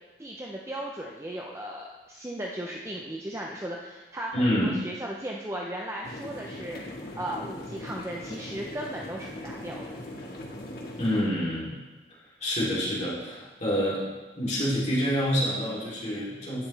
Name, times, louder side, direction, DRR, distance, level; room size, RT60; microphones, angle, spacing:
voice 1, 0.2-9.9, right 1 dB, 15° right, -1 dB, 0.6 m, -36 dB
voice 2, 4.3-4.7 11.0-11.8 12.4-16.7, equal, 40° left, -7 dB, 3.3 m, -27 dB
sound 1, 6.0-11.2, left 1 dB, 60° left, 1.9 m, -40 dB
11.5 x 8.9 x 3.4 m, 1.2 s
head